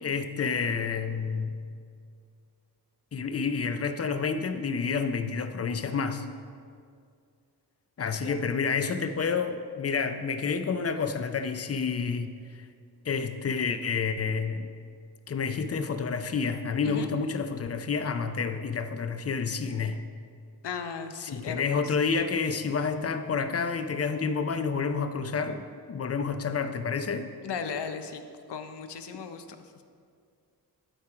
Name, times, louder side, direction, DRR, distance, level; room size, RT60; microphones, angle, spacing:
voice 1, 0.0-1.6 3.1-6.3 8.0-12.3 13.0-14.7 15.3-20.0 21.2-27.3, left 5 dB, 40° left, 9 dB, 0.4 m, -29 dB
voice 2, 20.6-22.0 27.4-28.2 28.5-29.5, left 6 dB, 80° left, 8 dB, 0.7 m, -36 dB
12.0 x 4.4 x 4.8 m, 2.2 s
wide cardioid pair, 150°, 41 cm